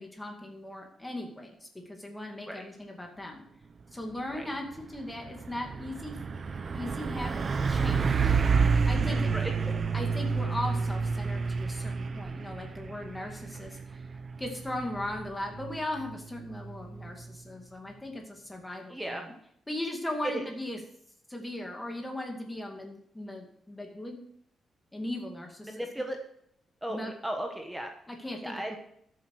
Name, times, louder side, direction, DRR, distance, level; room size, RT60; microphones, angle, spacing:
voice 1, 0.0-3.4 3.9-6.2 6.7-9.3 9.9-13.8 14.4-19.3 19.7-20.8 21.3-24.2 24.9-25.9 26.9-27.1 28.1-28.8, left 1 dB, 10° left, 2 dB, 2.3 m, -38 dB
Truck, 4.2-4.4 4.8-17.4, right 5 dB, 35° right, 0.6 m, -30 dB
voice 2, 9.0-9.5 18.9-19.2 20.2-20.5 25.6-26.2 26.8-27.9 28.4-28.8, right 1 dB, 5° right, 3 dB, 1.2 m, -35 dB
13.0 x 7.7 x 4.8 m, 0.71 s
cardioid pair, 145°, 0 cm